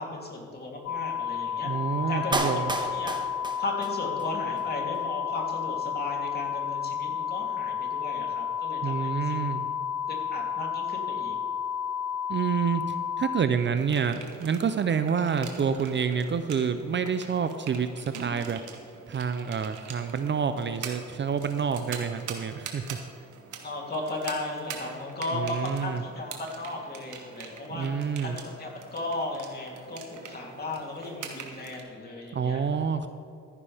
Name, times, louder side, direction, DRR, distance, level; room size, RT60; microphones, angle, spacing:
voice 1, 0.0-1.7 2.1-2.5 2.9-3.2 3.6-9.4 10.3-11.4 23.6-32.6, left 2 dB, 30° left, -1 dB, 3.1 m, -36 dB
sound 1, 0.9-13.4, left 8 dB, 60° left, 0.5 m, -31 dB
voice 2, 1.6-2.7 8.8-9.7 12.3-18.6 19.1-23.0 25.3-26.0 27.7-28.4 32.3-33.1, right 6 dB, 40° right, 10 dB, 0.6 m, -28 dB
Clapping, 2.3-4.3 4.6-4.7, right 2 dB, 15° right, 1.3 m, -31 dB
sound 2, 13.8-31.8, right 6 dB, 80° right, 1.8 m, -44 dB
14.5 x 11.0 x 3.5 m, 2.7 s
cardioid pair, 90°, 30 cm